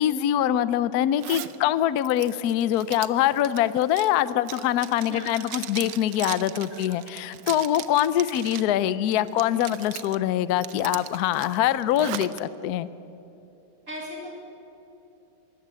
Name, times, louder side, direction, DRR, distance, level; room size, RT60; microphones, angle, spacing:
voice 1, 0.0-12.9, left 11 dB, 65° left, 16 dB, 1.0 m, -24 dB
Zipper (clothing), 1.2-1.6 2.0-8.7 9.1-10.2 10.6-12.4, right 12 dB, 70° right, 1.4 m, -38 dB
voice 2, 5.1-5.6 6.7-7.0 13.9-14.3, equal, 40° right, -2 dB, 2.8 m, -38 dB
22.0 x 16.5 x 7.6 m, 2.9 s
omnidirectional pair, 2.2 m